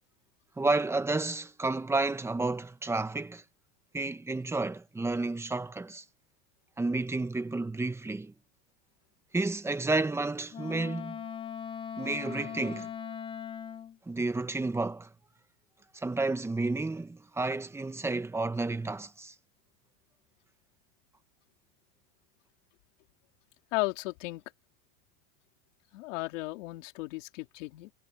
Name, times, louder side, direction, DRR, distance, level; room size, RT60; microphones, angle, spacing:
voice 1, 0.6-3.4 3.9-6.0 6.8-8.3 9.3-11.2 12.0-12.9 14.1-15.1 15.9-19.3, right 3 dB, 5° right, 1.3 m, -31 dB
Wind instrument woodwind instrument, 10.5-14.0, left 8 dB, 15° left, 0.6 m, -39 dB
voice 2, 23.7-24.4 25.9-27.9, left 22 dB, 75° left, 3.8 m, -35 dB
supercardioid pair, 145°, 38 cm